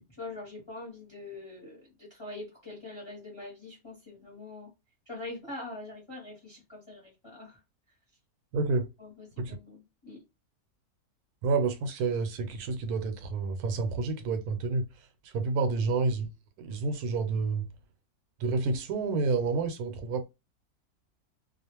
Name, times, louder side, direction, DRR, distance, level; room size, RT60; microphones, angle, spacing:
voice 1, 0.2-4.7 5.1-7.6 9.0-10.2 15.4-15.7, left 2 dB, 20° left, 0.9 m, -44 dB
voice 2, 8.5-8.9 9.4-9.6 11.4-14.9 15.2-16.3 16.6-17.7 18.4-20.3, right 4 dB, 85° right, 1.1 m, -29 dB
2.4 x 2.3 x 2.9 m
omnidirectional pair, 1.6 m